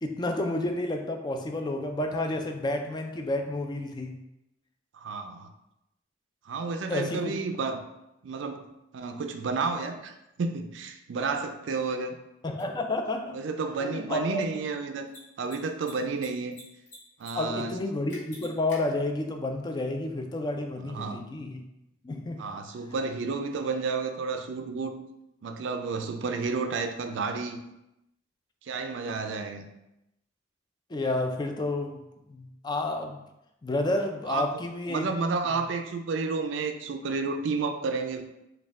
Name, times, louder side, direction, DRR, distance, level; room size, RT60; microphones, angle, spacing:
voice 1, 0.0-4.2 6.9-7.4 12.4-13.4 13.8-14.4 17.4-21.6 22.0-22.4 30.9-32.0 32.3-33.3 33.6-35.1, left 2 dB, 20° left, 4 dB, 0.4 m, -30 dB
voice 2, 4.9-5.5 6.5-7.9 8.2-10.1 10.4-12.2 13.3-15.1 15.4-16.6 17.2-17.7 20.8-21.3 22.4-25.0 25.4-27.6 28.6-29.6 34.3-34.5 34.9-38.2, right 4 dB, 65° right, 6 dB, 0.4 m, -31 dB
Mechanisms, 12.6-12.7 15.0-15.2 15.4-15.6 15.8-16.6 16.9-17.3 17.6-17.7 18.1-18.8, left 1 dB, 65° left, 1.4 m, -46 dB
4.1 x 2.3 x 3.5 m, 0.88 s
head